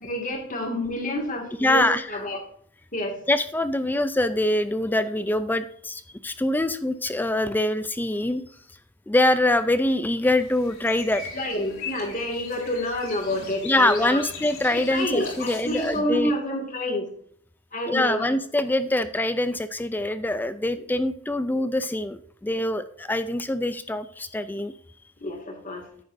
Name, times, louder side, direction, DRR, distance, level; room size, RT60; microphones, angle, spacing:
voice 1, 0.0-2.4 2.9-3.2 11.3-14.2 14.7-17.1 17.7-18.3 25.2-25.8, left 1 dB, 35° left, 2 dB, 2.1 m, -28 dB
voice 2, 1.6-2.1 3.3-8.4 9.1-11.2 13.6-16.3 17.9-24.7, left 1 dB, 10° left, 13 dB, 0.3 m, -24 dB
sound 1, 10.2-16.0, left 4 dB, 60° left, 3.1 m, -40 dB
9.7 x 8.5 x 2.6 m, 0.64 s
head